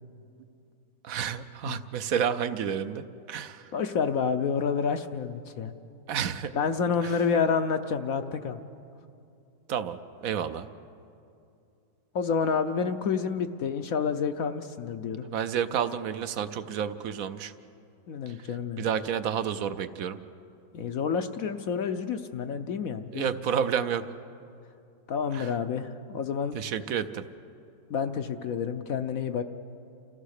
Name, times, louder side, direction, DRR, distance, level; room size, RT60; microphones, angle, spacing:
voice 1, 1.0-3.7 6.1-6.5 7.0-7.2 9.7-10.7 15.3-17.5 18.3-18.4 18.8-20.2 23.1-24.0 25.3-25.5 26.5-27.3, right 8 dB, 65° right, 12 dB, 1.0 m, -30 dB
voice 2, 3.7-5.7 6.5-8.6 12.1-15.2 18.1-18.8 20.7-23.3 25.1-26.6 27.9-29.4, left 6 dB, 60° left, 8 dB, 1.0 m, -29 dB
29.5 x 15.0 x 6.6 m, 2.6 s
omnidirectional pair, 1.9 m